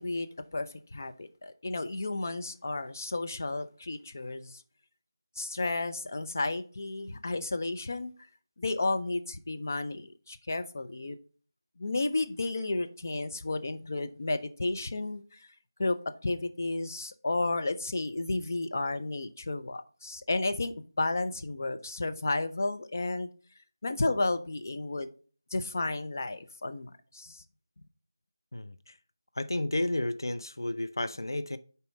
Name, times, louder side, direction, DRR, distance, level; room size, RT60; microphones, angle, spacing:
voice 1, 0.0-4.6 5.4-8.1 8.6-11.2 11.8-15.5 15.8-23.3 23.8-25.1 25.5-27.4, left 2 dB, 45° left, 0.7 m, -32 dB
voice 2, 28.5-29.0 29.3-31.6, left 1 dB, 80° left, 0.5 m, -32 dB
7.2 x 4.3 x 4.0 m
figure-of-eight pair, 170°, 2 cm